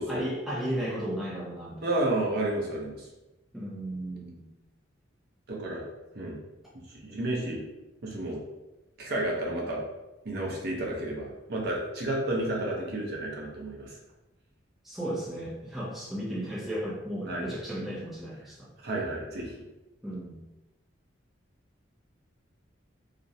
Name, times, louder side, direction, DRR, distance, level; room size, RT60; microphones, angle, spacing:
voice 1, 0.1-1.9 3.5-4.5 14.8-18.7 20.0-20.4, right 1 dB, ahead, -6 dB, 0.4 m, -34 dB
voice 2, 1.8-3.1 5.5-5.8 6.1-6.4 6.9-7.6 8.0-8.4 9.0-9.8 10.2-13.9 17.3-17.5 18.8-19.5, right 1 dB, 55° right, -2 dB, 0.6 m, -31 dB
2.4 x 2.0 x 2.6 m, 1.0 s
head